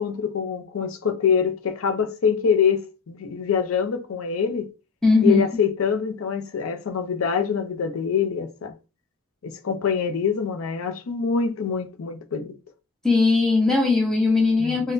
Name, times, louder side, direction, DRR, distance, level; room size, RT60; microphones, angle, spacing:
voice 1, 0.0-4.7 5.2-8.7 9.4-12.6 14.6-14.8, left 6 dB, 70° left, 0.4 m, -25 dB
voice 2, 5.0-5.4 13.0-14.9, left 3 dB, ahead, 0.5 m, -19 dB
4.1 x 2.0 x 2.5 m
head